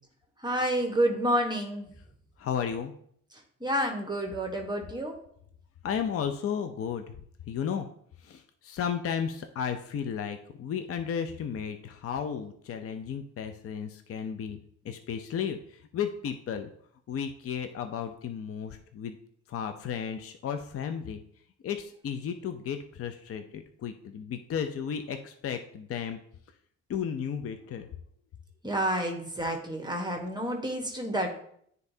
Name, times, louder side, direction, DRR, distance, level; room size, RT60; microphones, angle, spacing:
voice 1, 0.4-1.9 3.6-5.1 28.6-31.4, right 1 dB, 15° right, 2 dB, 1.1 m, -29 dB
voice 2, 2.4-2.9 5.8-7.0 7.5-7.9 8.2-14.6 14.8-16.7 17.1-19.1 19.5-21.2 21.6-26.2 26.9-27.9, left 7 dB, 50° left, 7 dB, 0.5 m, -34 dB
9.6 x 4.0 x 2.7 m, 0.66 s
cardioid pair, 90°, 30 cm